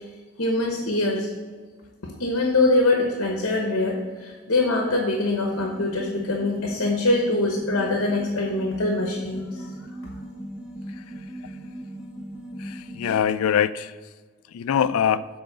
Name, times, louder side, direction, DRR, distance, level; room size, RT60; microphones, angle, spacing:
voice 1, 0.4-1.3 2.0-9.7, left 2 dB, 65° left, 1 dB, 1.0 m, -23 dB
sound 1, 5.5-13.2, right 1 dB, 5° right, 0.9 m, -38 dB
voice 2, 12.6-14.0 14.5-15.3, left 8 dB, 85° left, 15 dB, 0.3 m, -24 dB
7.8 x 3.9 x 6.7 m, 1.5 s
head